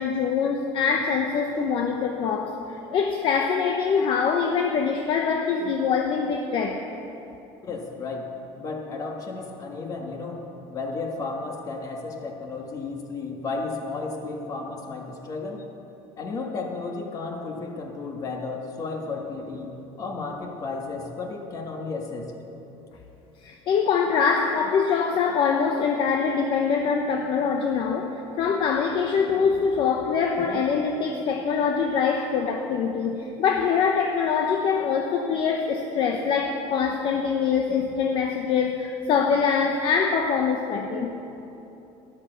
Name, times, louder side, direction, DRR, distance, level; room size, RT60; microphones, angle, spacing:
voice 1, 0.0-6.8 23.4-41.2, left 6 dB, 45° left, 3 dB, 0.9 m, -24 dB
voice 2, 7.6-15.7 16.2-22.3, left 3 dB, 30° left, 2 dB, 1.7 m, -33 dB
12.5 x 11.5 x 6.7 m, 3.0 s
cardioid pair, 155°, 12 cm